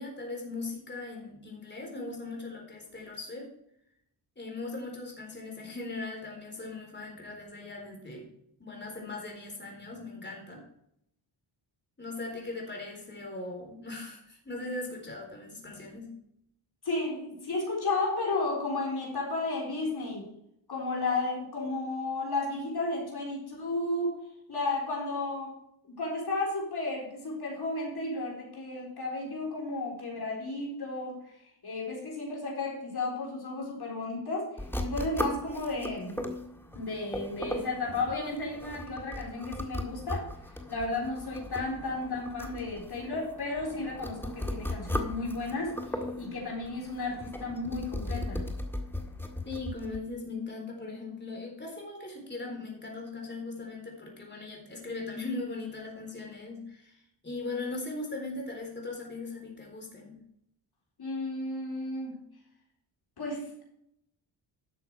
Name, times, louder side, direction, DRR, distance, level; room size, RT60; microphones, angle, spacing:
voice 1, 0.0-3.5 4.4-8.3 8.6-10.6 12.0-16.2 49.4-60.2, left 3 dB, 20° left, 0 dB, 4.0 m, -39 dB
voice 2, 16.8-20.3 20.7-24.2 24.5-25.6 25.9-36.2 36.7-40.3 40.7-48.5 61.0-62.2 63.2-63.6, left 2 dB, 50° left, -2 dB, 4.1 m, -33 dB
sound 1, 34.6-50.0, left 1 dB, 5° left, 1.7 m, -37 dB
12.0 x 6.7 x 4.7 m, 0.74 s
cardioid pair, 75°, 48 cm